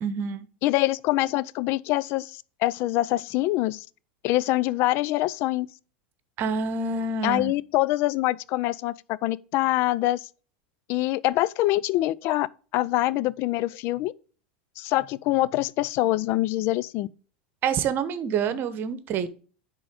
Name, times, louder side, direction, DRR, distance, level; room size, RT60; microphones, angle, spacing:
voice 1, 0.0-0.5 6.4-7.5 17.6-19.3, right 5 dB, 40° right, 1.0 m, -27 dB
voice 2, 0.6-3.9 4.2-5.7 7.2-10.3 10.9-12.5 12.7-14.1 14.8-17.1, left 16 dB, 50° left, 0.4 m, -25 dB
10.0 x 3.8 x 5.0 m
hypercardioid pair, 90°, 5 cm